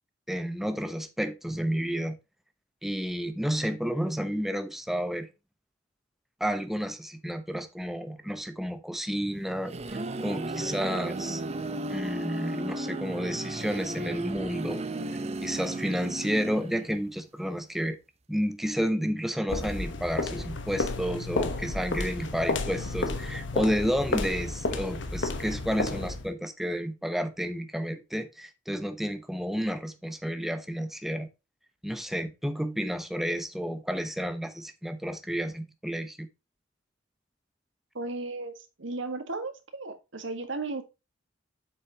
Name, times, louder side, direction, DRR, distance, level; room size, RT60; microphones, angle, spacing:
voice 1, 0.3-2.2 2.8-5.3 6.4-11.4 11.9-14.8 15.4-18.0 18.3-31.3 31.8-36.3, equal, ahead, 0.8 m, -31 dB
sound 1, 9.3-17.1, right 2 dB, 35° right, 0.7 m, -34 dB
sound 2, 19.5-26.3, left 3 dB, 70° left, 1.1 m, -31 dB
voice 2, 37.9-40.8, right 3 dB, 80° right, 1.7 m, -35 dB
7.9 x 6.1 x 2.9 m
head